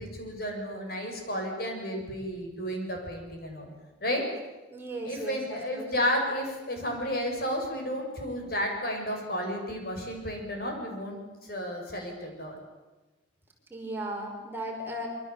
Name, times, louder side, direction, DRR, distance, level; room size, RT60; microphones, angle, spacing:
voice 1, 0.0-3.7 4.0-4.2 5.0-12.6, equal, 50° left, 2 dB, 7.8 m, -32 dB
voice 2, 4.7-5.4 5.8-5.9 13.7-15.1, right 1 dB, 10° right, -1 dB, 6.1 m, -36 dB
27.0 x 25.0 x 8.6 m, 1.2 s
head